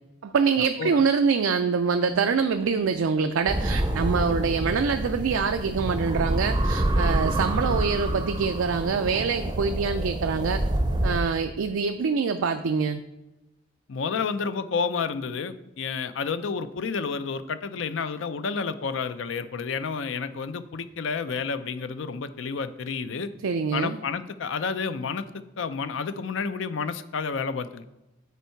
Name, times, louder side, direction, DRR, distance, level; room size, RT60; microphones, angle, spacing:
voice 1, 0.2-10.6 11.0-13.0 23.4-24.0, right 5 dB, 90° right, 7 dB, 0.4 m, -25 dB
sound 1, 3.5-11.2, right 1 dB, 20° right, 0.5 m, -27 dB
voice 2, 13.9-23.3 23.7-27.9, left 5 dB, 70° left, 12 dB, 0.5 m, -30 dB
8.1 x 4.6 x 4.4 m, 0.99 s
head